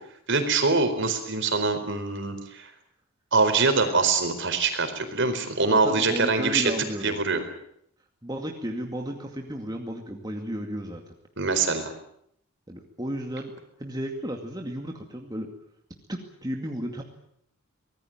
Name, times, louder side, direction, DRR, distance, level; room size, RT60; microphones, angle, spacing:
voice 1, 0.3-2.7 3.3-6.7 7.0-7.4 11.4-11.9, right 4 dB, 55° right, 8 dB, 4.4 m, -24 dB
voice 2, 5.7-7.2 8.2-11.1 12.7-13.5 13.8-15.5 16.1-17.0, equal, 15° right, 2 dB, 2.3 m, -33 dB
24.5 x 19.5 x 9.0 m, 0.71 s
head